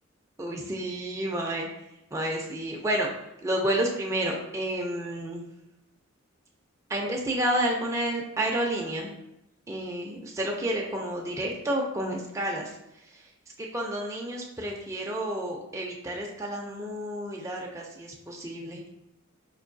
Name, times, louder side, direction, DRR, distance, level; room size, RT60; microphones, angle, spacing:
voice 1, 0.4-1.7 2.1-3.1 3.4-5.4 6.9-9.1 9.7-12.7 13.6-18.8, right 1 dB, 15° right, -1 dB, 0.4 m, -30 dB
4.5 x 2.6 x 2.6 m, 0.86 s
head